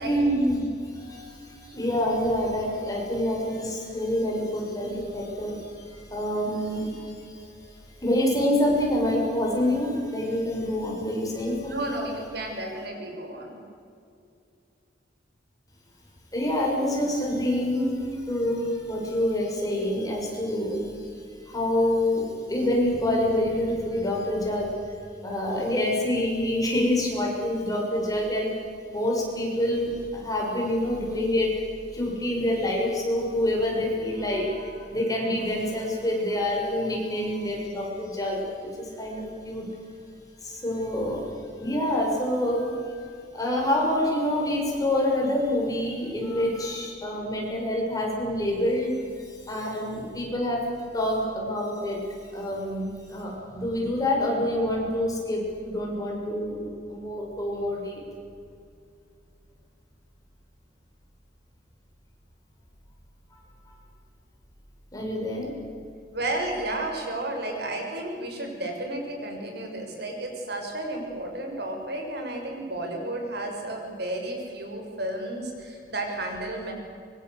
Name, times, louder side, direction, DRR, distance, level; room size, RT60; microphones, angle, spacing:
voice 1, 0.0-7.4 8.0-12.0 16.3-24.9 25.2-28.5 28.9-31.6 31.9-39.7 40.4-41.3 41.6-50.7 50.9-52.0 52.3-58.0 64.9-65.5, left 1 dB, 20° left, -2 dB, 6.6 m, -27 dB
voice 2, 11.6-13.6 66.1-76.7, right 1 dB, 65° right, 2 dB, 6.0 m, -32 dB
25.0 x 24.0 x 8.2 m, 2.4 s
head